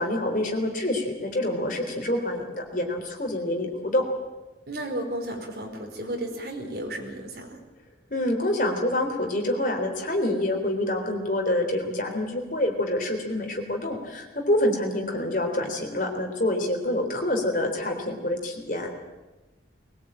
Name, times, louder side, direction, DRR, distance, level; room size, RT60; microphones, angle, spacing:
voice 1, 0.0-4.0 8.1-18.9, left 1 dB, 45° left, 3 dB, 3.8 m, -27 dB
voice 2, 4.7-7.6, right 1 dB, 60° right, 2 dB, 4.6 m, -33 dB
21.5 x 19.5 x 8.9 m, 1.2 s
head